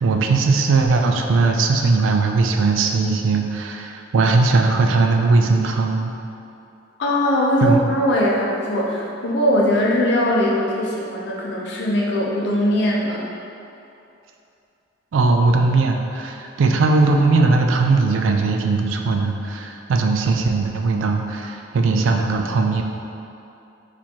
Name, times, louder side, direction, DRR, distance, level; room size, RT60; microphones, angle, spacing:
voice 1, 0.0-6.1 7.6-7.8 15.1-22.8, right 3 dB, 90° right, 3 dB, 0.3 m, -19 dB
voice 2, 7.0-13.2, equal, 65° left, -4 dB, 0.6 m, -20 dB
4.3 x 2.5 x 2.9 m, 2.7 s
head